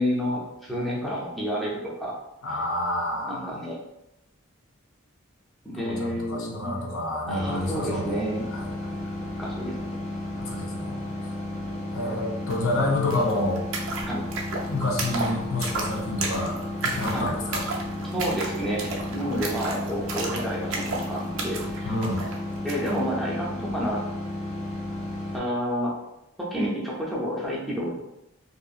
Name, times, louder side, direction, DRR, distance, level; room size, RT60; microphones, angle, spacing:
voice 1, 0.0-2.2 3.3-3.8 5.6-7.0 7.3-8.5 9.4-9.8 14.1-14.2 17.1-17.3 18.1-21.9 22.6-24.0 25.3-26.0 26.4-28.0, equal, ahead, -5 dB, 0.4 m, -30 dB
voice 2, 2.4-3.6 5.8-8.3 8.5-9.0 10.4-11.3 11.9-13.6 14.7-17.6 21.8-22.2, left 2 dB, 75° left, 0 dB, 0.6 m, -29 dB
sound 1, 7.3-25.4, left 1 dB, 35° left, 0.7 m, -33 dB
sound 2, 12.5-12.6 12.8-23.0, right 3 dB, 65° right, 0.5 m, -34 dB
2.6 x 2.4 x 2.3 m, 0.89 s
head